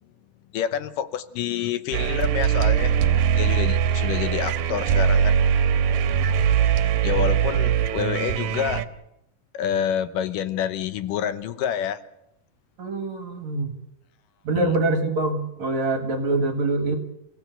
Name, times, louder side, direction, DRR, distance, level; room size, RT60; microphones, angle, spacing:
voice 1, 0.5-2.9 3.4-5.4 7.0-8.8 9.5-12.0 14.6-14.8, left 9 dB, 70° left, 12 dB, 2.4 m, -27 dB
sound 1, 1.9-8.8, right 8 dB, 75° right, 2.7 m, -21 dB
voice 2, 12.8-13.7 14.5-17.0, right 2 dB, 55° right, 6 dB, 2.7 m, -24 dB
29.5 x 16.5 x 8.1 m, 0.85 s
omnidirectional pair, 4.2 m